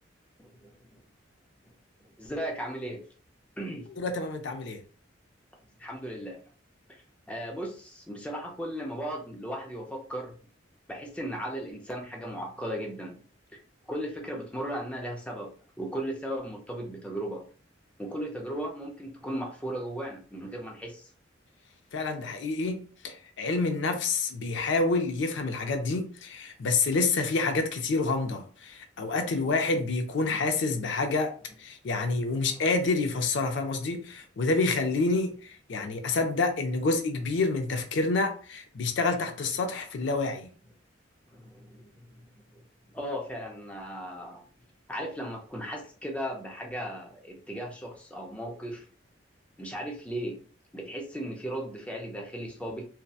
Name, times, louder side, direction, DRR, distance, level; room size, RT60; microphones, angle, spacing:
voice 1, 0.4-1.0 2.2-3.0 3.6-3.9 5.8-6.4 6.9-7.0 7.3-10.3 10.9-13.2 13.9-15.5 15.8-17.5 18.0-21.1 41.3-41.9 42.5-42.6 42.9-44.4 44.9-48.9 49.6-50.4 50.7-52.9, equal, 5° left, 0 dB, 0.4 m, -36 dB
voice 2, 4.0-4.8 21.9-31.3 31.6-40.5, left 3 dB, 70° left, 5 dB, 0.4 m, -28 dB
2.7 x 2.1 x 2.3 m, 0.41 s
head